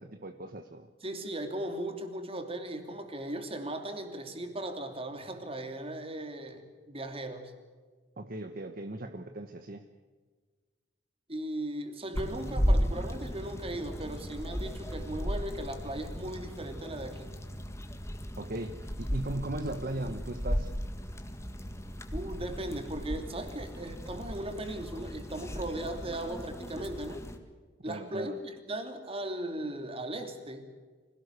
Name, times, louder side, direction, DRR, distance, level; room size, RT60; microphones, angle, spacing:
voice 1, 0.0-0.9 8.2-9.8 18.4-20.7 21.7-21.8 27.8-28.4, right 1 dB, 50° right, 7 dB, 1.2 m, -38 dB
voice 2, 1.0-7.5 11.3-17.4 22.1-27.2 27.8-30.7, right 1 dB, 30° right, 6 dB, 3.0 m, -37 dB
sound 1, 12.1-27.4, equal, 15° left, 1.9 m, -35 dB
25.0 x 18.0 x 8.2 m, 1.5 s
head